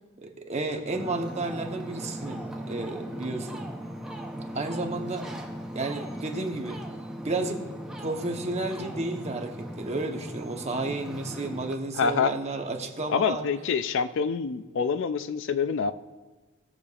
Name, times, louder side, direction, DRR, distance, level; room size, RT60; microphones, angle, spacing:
voice 1, 0.2-3.7 4.5-5.3 5.7-6.8 7.2-7.6 8.0-13.5, right 2 dB, 30° right, 3 dB, 0.9 m, -32 dB
Ocean, 0.9-11.7, equal, 5° right, 0.6 m, -38 dB
voice 2, 11.9-12.3 13.1-15.9, left 6 dB, 60° left, 12 dB, 0.4 m, -26 dB
18.5 x 6.7 x 2.4 m, 1.2 s
head